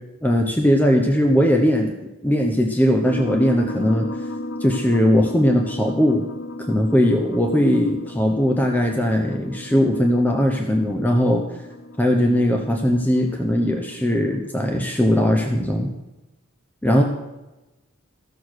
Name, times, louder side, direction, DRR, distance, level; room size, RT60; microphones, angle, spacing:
voice 1, 0.2-1.9 2.2-4.1 4.6-6.2 6.7-11.4 12.0-15.9 16.8-17.0, equal, 10° left, 2 dB, 0.8 m, -19 dB
sound 1, 3.0-15.5, left 1 dB, 50° left, 0.9 m, -35 dB
14.5 x 7.0 x 6.3 m, 1.0 s
head